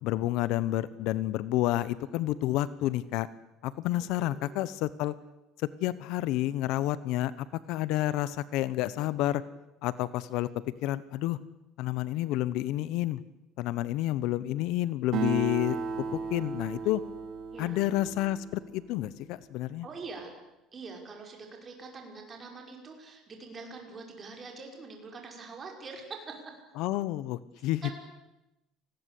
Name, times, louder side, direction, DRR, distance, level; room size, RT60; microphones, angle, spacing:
voice 1, 0.0-3.3 3.6-5.1 5.8-9.4 9.8-10.5 10.8-11.4 11.8-13.2 13.6-15.8 16.3-17.0 17.6-19.9 26.8-27.8, left 15 dB, 65° left, 17 dB, 1.0 m, -29 dB
voice 2, 4.0-4.8 14.5-14.6 17.5-18.1 19.8-20.3 20.7-26.5 27.8-27.9, right 4 dB, 25° right, 2 dB, 5.8 m, -44 dB
Acoustic guitar, 15.1-18.9, right 4 dB, 50° right, 3.6 m, -35 dB
30.0 x 20.5 x 8.5 m, 0.93 s
cardioid pair, 165°, 0 cm